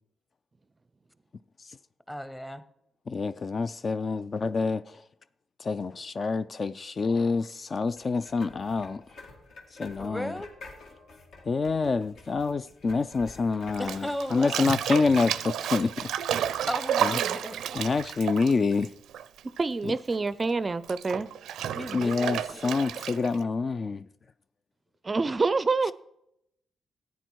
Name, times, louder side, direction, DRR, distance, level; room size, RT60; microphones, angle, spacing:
voice 1, 2.1-2.6 10.0-10.5 13.8-14.7 16.7-17.9 21.7-22.9 23.1-23.2, left 1 dB, 10° left, 0.8 m, -36 dB
voice 2, 3.1-5.0 5.6-9.0 9.8-10.3 11.5-16.1 17.0-17.1 17.7-18.9 21.9-24.0, left 4 dB, 40° left, 0.3 m, -27 dB
sound 1, 8.0-14.5, left 3 dB, 75° left, 2.1 m, -49 dB
Bathtub (filling or washing), 13.7-19.6 19.9-23.4, right 10 dB, 85° right, 0.5 m, -31 dB
voice 3, 19.6-21.3 25.0-25.9, right 3 dB, 30° right, 0.4 m, -26 dB
13.5 x 9.1 x 4.6 m
cardioid pair, 95°, 0 cm